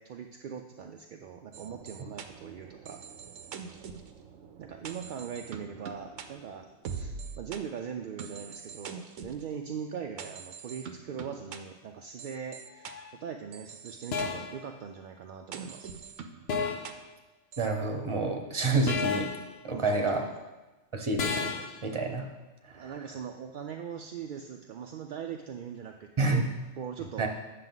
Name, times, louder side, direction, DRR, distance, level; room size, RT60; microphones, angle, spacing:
voice 1, 0.0-3.0 4.6-12.9 13.2-15.9 19.7-20.4 22.7-26.4 26.8-27.3, right 7 dB, 60° right, 3 dB, 0.5 m, -41 dB
sound 1, 1.5-7.6 8.2-9.4 10.2-11.6 12.2-12.9 13.5-14.3 15.5-16.9 17.5-17.7, right 6 dB, 90° right, 1.0 m, -43 dB
sound 2, 12.9-13.1 14.1-14.6 16.5-17.0 18.9-19.5 21.2-21.8, left 5 dB, 65° left, 0.9 m, -32 dB
voice 2, 17.6-19.3 19.6-20.2 20.9-21.5 21.8-22.3 22.6-22.9 26.2-26.5 27.2-27.3, right 3 dB, 25° right, 2 dB, 0.9 m, -28 dB
9.1 x 6.6 x 3.9 m, 1.1 s
omnidirectional pair, 1.2 m